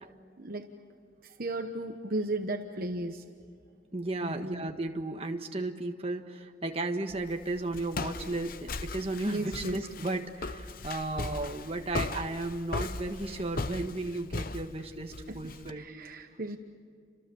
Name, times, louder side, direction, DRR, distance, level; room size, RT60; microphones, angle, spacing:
voice 1, 0.4-0.7 1.2-3.2 4.2-4.7 9.3-9.8 15.3-15.4 15.8-16.6, right 2 dB, 45° right, 5 dB, 1.1 m, -35 dB
voice 2, 3.9-15.9, right 2 dB, 30° right, 4 dB, 1.5 m, -34 dB
Walk footsteps, 7.1-15.7, left 3 dB, 45° left, 0.8 m, -38 dB
30.0 x 26.0 x 7.1 m, 2.2 s
head